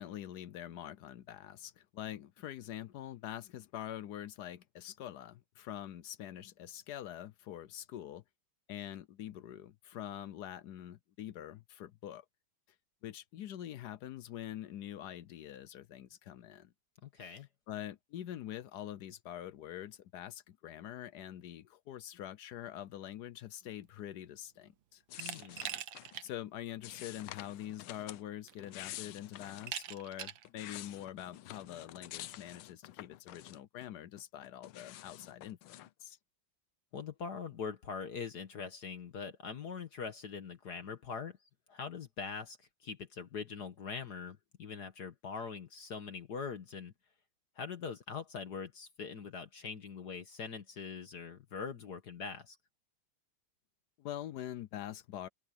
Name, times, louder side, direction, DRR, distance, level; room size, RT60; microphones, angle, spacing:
voice 1, 0.0-8.2 8.7-12.3 13.0-16.7 17.2-17.4 17.7-25.0 26.2-36.2 54.0-55.3, left 11 dB, 70° left, 1.0 m, -45 dB
voice 2, 17.0-17.5 25.2-25.6 36.9-41.4 41.7-42.6 42.8-46.9 47.6-52.6, left 5 dB, 55° left, 1.7 m, -42 dB
sound 1, 25.1-26.2 26.8-28.2 28.6-29.7 30.3-33.9 34.2-35.9, left 15 dB, 85° left, 1.5 m, -49 dB
Glass, 25.2-26.3 26.7-26.8 27.9-28.0 28.5-28.9 29.7-30.5, right 11 dB, 70° right, 1.6 m, -42 dB
omnidirectional pair, 2.3 m